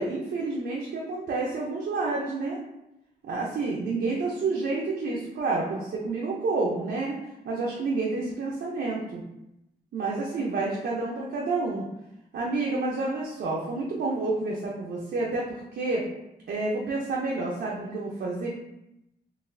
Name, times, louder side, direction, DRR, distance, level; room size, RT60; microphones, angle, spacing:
voice 1, 0.0-2.6 3.2-7.2 7.4-9.2 9.9-11.8 12.3-16.0 16.5-18.5, right 3 dB, 70° right, -3 dB, 0.6 m, -29 dB
3.9 x 2.4 x 2.6 m, 0.87 s
wide cardioid pair, 155°, 17 cm